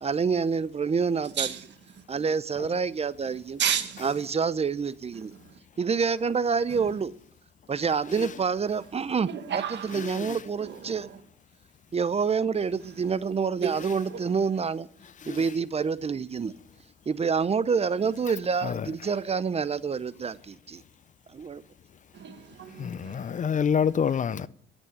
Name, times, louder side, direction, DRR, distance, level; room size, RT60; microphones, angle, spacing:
voice 1, 0.0-1.5 2.1-3.6 4.0-5.3 5.8-7.1 7.7-9.3 9.5-11.1 11.9-14.9 15.3-16.5 17.1-20.8 21.3-21.6, right 5 dB, 30° right, 0.6 m, -27 dB
voice 2, 1.2-1.7 2.0-2.1 3.6-4.1 5.1-5.6 6.7-6.9 9.3-10.1 10.6-11.2 13.6-14.4 22.1-23.5, right 8 dB, 65° right, 1.7 m, -33 dB
voice 3, 9.9-10.4 15.2-15.5 18.6-18.9 22.8-24.5, left 7 dB, 40° left, 0.5 m, -28 dB
11.0 x 8.3 x 10.0 m
cardioid pair, 90°, 20 cm